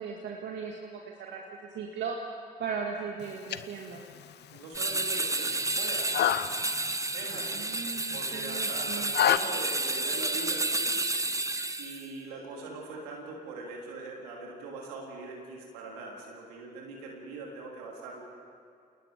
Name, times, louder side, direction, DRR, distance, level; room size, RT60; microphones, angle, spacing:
voice 1, 0.0-2.2 2.6-4.0 7.5-9.1, right 6 dB, 65° right, 0 dB, 2.0 m, -37 dB
sound 1, 3.2-9.4, left 11 dB, 60° left, 0.8 m, -32 dB
voice 2, 4.5-6.2 7.1-7.6 8.1-11.0 11.8-18.2, right 3 dB, 85° right, -1 dB, 3.7 m, -41 dB
sound 2, 4.7-12.1, right 2 dB, 15° right, 1.2 m, -31 dB
28.5 x 19.0 x 5.2 m, 2.4 s
hypercardioid pair, 45°, 19 cm